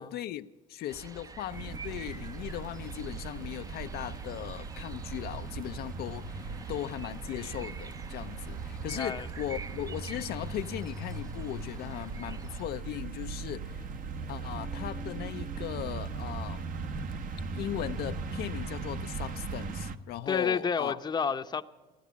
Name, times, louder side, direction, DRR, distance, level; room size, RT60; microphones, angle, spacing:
voice 1, 0.0-13.9 14.3-16.9 17.5-21.0, left 13 dB, 70° left, 0.5 m, -38 dB
sound 1, 0.9-12.7, right 4 dB, 20° right, 0.5 m, -47 dB
sound 2, 1.5-20.0, right 4 dB, 55° right, 1.0 m, -39 dB
voice 2, 8.9-9.3 20.3-21.6, left 6 dB, 25° left, 0.7 m, -30 dB
16.0 x 11.0 x 8.3 m
cardioid pair, 110°, 17 cm